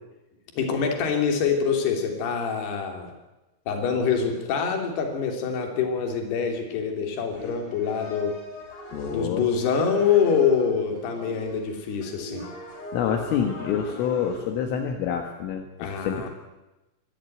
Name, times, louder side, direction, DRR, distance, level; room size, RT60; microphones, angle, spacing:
voice 1, 0.6-3.1 3.7-8.3 9.1-12.5 15.8-16.3, left 6 dB, 55° left, 3 dB, 4.7 m, -25 dB
sound 1, 7.3-14.4, equal, 35° left, 6.7 m, -40 dB
voice 2, 8.9-9.5 12.9-16.3, left 8 dB, 75° left, 3 dB, 4.1 m, -27 dB
24.0 x 14.5 x 9.3 m, 1.0 s
omnidirectional pair, 6.0 m